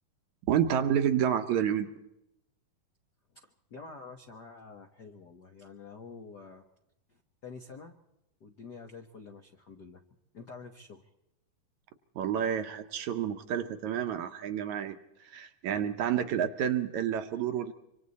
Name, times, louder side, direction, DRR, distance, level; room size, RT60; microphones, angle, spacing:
voice 1, 0.5-1.9 12.2-17.7, right 9 dB, 70° right, 8 dB, 2.0 m, -29 dB
voice 2, 3.3-6.6 7.1-8.0 8.4-10.0 10.3-11.1, left 4 dB, 70° left, 4 dB, 0.9 m, -48 dB
26.5 x 25.0 x 4.2 m, 0.84 s
omnidirectional pair, 4.0 m